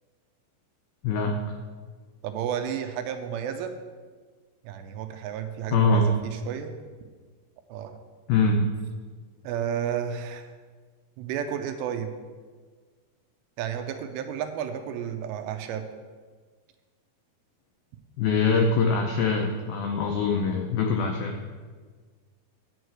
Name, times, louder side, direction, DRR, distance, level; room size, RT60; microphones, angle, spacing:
voice 1, 2.2-3.7 4.6-6.7 7.7-8.0 9.4-10.5 11.2-12.1 13.6-15.9, right 9 dB, 80° right, 7 dB, 2.7 m, -32 dB
voice 2, 5.7-6.1 8.3-8.6 18.2-21.4, left 4 dB, 85° left, 2 dB, 2.1 m, -23 dB
9.9 x 4.7 x 7.8 m, 1.5 s
omnidirectional pair, 5.2 m